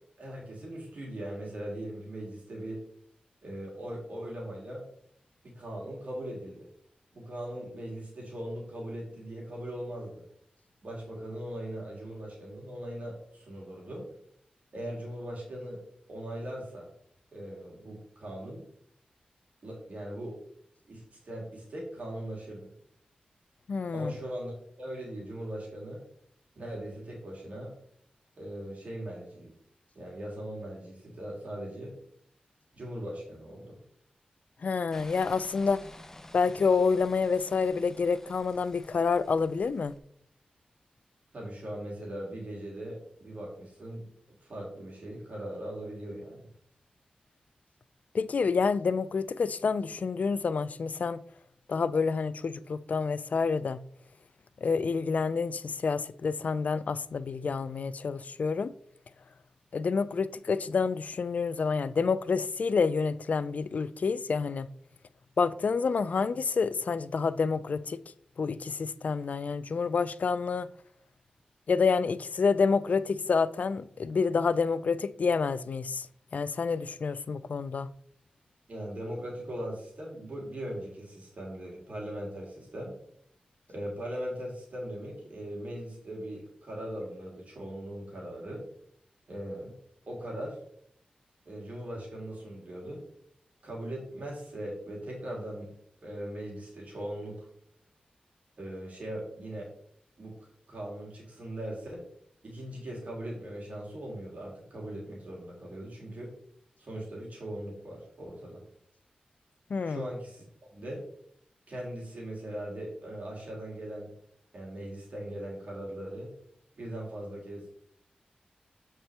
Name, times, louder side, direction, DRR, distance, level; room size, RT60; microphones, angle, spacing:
voice 1, 0.2-2.8 3.4-4.8 5.4-6.7 7.1-10.2 10.8-14.1 14.7-15.8 16.1-16.9 17.3-18.6 19.6-20.4 20.9-22.7 23.9-26.0 26.6-27.7 28.4-29.5 29.9-32.0 32.7-33.8 41.3-44.1 44.4-46.5 78.7-82.9 83.7-88.7 89.3-89.8 90.1-90.6 91.5-93.0 93.6-95.7 96.0-97.5 98.6-99.7 100.2-100.3 100.7-102.0 102.4-106.3 106.8-108.6 109.8-110.4 110.7-111.0 111.7-114.1 114.5-116.3 116.8-117.7, right 1 dB, 60° right, 2.5 m, -39 dB
voice 2, 23.7-24.1 34.6-35.8 36.3-39.9 48.1-51.2 51.7-53.8 54.6-58.7 59.7-64.7 65.4-68.0 68.4-70.7 71.7-76.1 76.3-77.9 109.7-110.1, left 5 dB, 65° left, 0.3 m, -28 dB
sound 1, 34.9-40.0, left 1 dB, 15° left, 0.6 m, -51 dB
7.7 x 4.4 x 3.4 m
wide cardioid pair, 70°, 3 cm